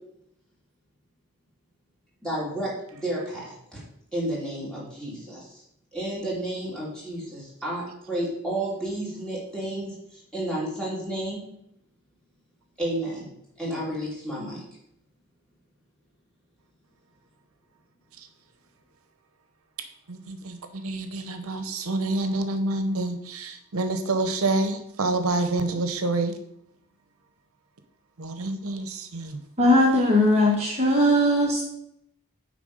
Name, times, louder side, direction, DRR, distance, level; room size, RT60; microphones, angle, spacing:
voice 1, 2.2-3.8 4.1-5.6 5.9-11.4 12.8-13.3 13.6-14.6, right 1 dB, 5° left, -6 dB, 2.7 m, -31 dB
voice 2, 20.1-26.3 28.2-29.4, right 2 dB, 80° right, 8 dB, 0.7 m, -27 dB
voice 3, 29.6-31.6, left 1 dB, 30° right, -2 dB, 1.2 m, -19 dB
9.2 x 3.6 x 5.1 m, 0.75 s
head